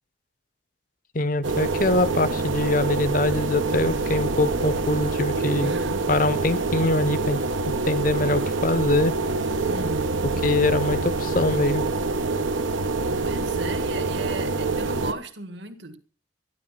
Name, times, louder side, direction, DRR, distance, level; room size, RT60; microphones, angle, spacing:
voice 1, 1.1-5.7 6.1-7.4 7.8-9.1 10.4-11.9, left 2 dB, 45° left, 0.8 m, -23 dB
sound 1, 1.4-15.1, right 3 dB, 80° right, 1.2 m, -26 dB
voice 2, 5.6-6.1 9.7-10.3 13.2-16.0, right 2 dB, 65° right, 1.8 m, -36 dB
13.5 x 12.0 x 5.8 m
head